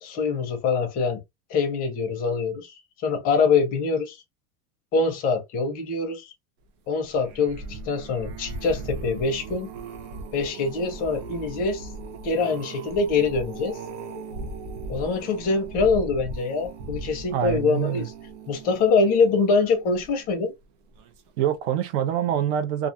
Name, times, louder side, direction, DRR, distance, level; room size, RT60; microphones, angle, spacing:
voice 1, 0.0-1.2 1.5-4.2 4.9-6.3 6.9-9.7 10.3-11.9 12.2-13.8 14.9-18.1 18.5-20.5, left 4 dB, 25° left, 0.5 m, -24 dB
sound 1, 7.1-20.4 21.0-21.3 21.5-21.6, right 3 dB, 85° right, 0.8 m, -38 dB
voice 2, 17.3-18.1 21.4-22.9, right 10 dB, 60° right, 0.6 m, -25 dB
2.4 x 2.3 x 2.5 m
supercardioid pair, 175°, 37 cm